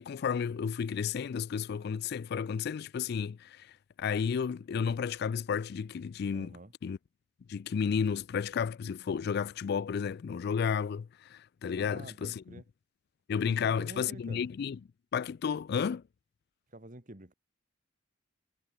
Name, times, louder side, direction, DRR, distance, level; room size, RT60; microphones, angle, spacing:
voice 1, 0.0-3.7 4.0-7.0 7.5-12.6 13.3-14.8 15.1-16.0, left 6 dB, 50° left, 0.3 m, -32 dB
voice 2, 6.3-6.7 11.8-12.6 13.4-14.5 16.7-17.3, right 1 dB, 40° right, 2.5 m, -48 dB
head